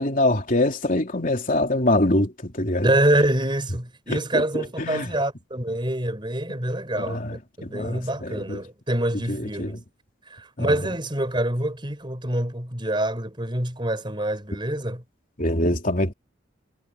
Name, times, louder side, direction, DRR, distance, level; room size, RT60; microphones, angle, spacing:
voice 1, 0.0-2.9 4.1-4.4 4.8-5.1 7.0-7.4 7.6-8.6 9.3-9.7 10.6-10.8 15.4-16.1, left 1 dB, 45° left, 3.5 m, -24 dB
voice 2, 2.8-7.2 7.6-9.8 10.3-15.0, right 1 dB, 25° right, 4.8 m, -26 dB
head